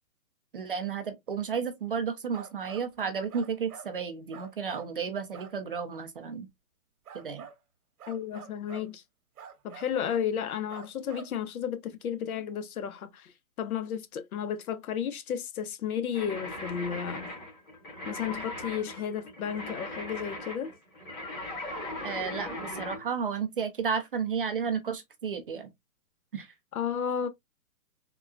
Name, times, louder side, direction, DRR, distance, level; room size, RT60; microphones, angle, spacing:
voice 1, 0.5-6.5 7.1-7.5 22.0-25.7 26.3-26.5, right 6 dB, 40° right, 0.4 m, -32 dB
sound 1, 2.3-2.9 3.3-3.9 4.3-4.9 5.3-5.5 7.0-7.6 8.0-8.9 9.4-10.3 10.7-11.3, right 7 dB, 70° right, 0.8 m, -46 dB
voice 2, 8.1-9.0 9.6-13.3 13.6-17.3 18.1-20.7 26.7-27.3, left 8 dB, 70° left, 0.7 m, -33 dB
sound 2, 16.1-23.0, left 1 dB, 30° left, 1.8 m, -39 dB
3.7 x 2.2 x 2.3 m
hypercardioid pair, 150°, 45 cm